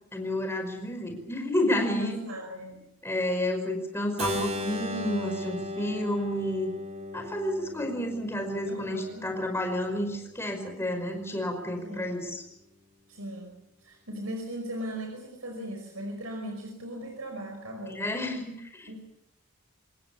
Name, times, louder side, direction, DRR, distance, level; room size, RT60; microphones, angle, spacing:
voice 1, 0.1-2.2 3.0-6.7 7.1-12.4 17.9-19.0, left 1 dB, 10° left, 4 dB, 5.3 m, -30 dB
voice 2, 2.0-2.8 8.7-9.3 11.8-12.3 13.1-13.5 13.8-18.0 18.9-19.0, equal, 75° right, 3 dB, 5.4 m, -38 dB
Keyboard (musical), 4.2-10.0, left 1 dB, 30° right, 3.3 m, -36 dB
27.0 x 20.5 x 7.1 m, 0.81 s
head